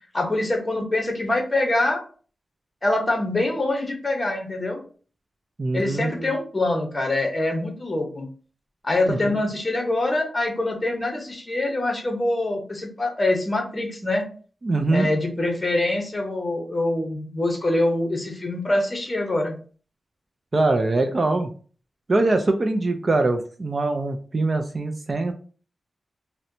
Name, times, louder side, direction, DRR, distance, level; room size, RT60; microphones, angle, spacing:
voice 1, 0.1-2.0 2.8-4.8 5.7-8.3 8.8-14.2 14.9-19.6, left 2 dB, 25° left, 2 dB, 0.8 m, -24 dB
voice 2, 5.6-6.3 9.1-9.4 14.6-15.1 20.5-21.5 22.1-25.3, right 2 dB, 35° right, 6 dB, 0.3 m, -23 dB
4.1 x 2.1 x 2.6 m, 0.40 s
wide cardioid pair, 150°, 0 cm